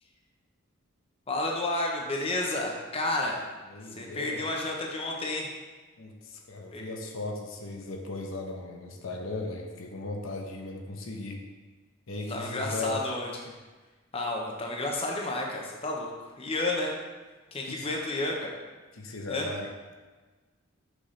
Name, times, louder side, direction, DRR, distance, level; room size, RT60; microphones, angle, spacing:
voice 1, 1.3-3.4 4.0-5.5 6.7-6.9 12.3-13.5 14.1-16.9 17.5-18.6 19.3-19.5, left 2 dB, 30° left, 0 dB, 0.8 m, -31 dB
voice 2, 3.7-4.4 6.0-11.4 12.1-13.0 17.6-17.9 18.9-19.7, left 2 dB, 85° left, 2 dB, 0.8 m, -37 dB
6.3 x 5.8 x 3.2 m, 1.3 s
head